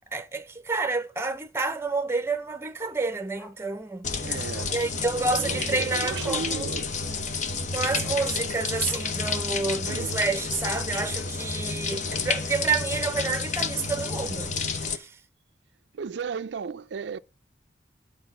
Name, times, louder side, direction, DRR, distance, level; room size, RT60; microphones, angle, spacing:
voice 1, 0.1-4.1 4.7-6.7 7.7-14.5 14.8-15.1, right 3 dB, 15° right, 0.8 m, -29 dB
Dog, 1.3-1.7 2.0-2.1 2.4-3.8 4.1-4.2 4.5-4.7 5.1-6.5 6.9-7.1 7.3-7.7 8.2-8.3 8.9-9.7 10.1-10.2, right 1 dB, ahead, 1.1 m, -49 dB
sound 1, 4.0-15.0, left 4 dB, 40° left, 0.9 m, -30 dB
voice 2, 4.2-4.8 5.2-6.9 8.1-8.2 9.9-10.2 15.9-17.2, right 6 dB, 75° right, 0.4 m, -35 dB
10.5 x 4.6 x 6.0 m
head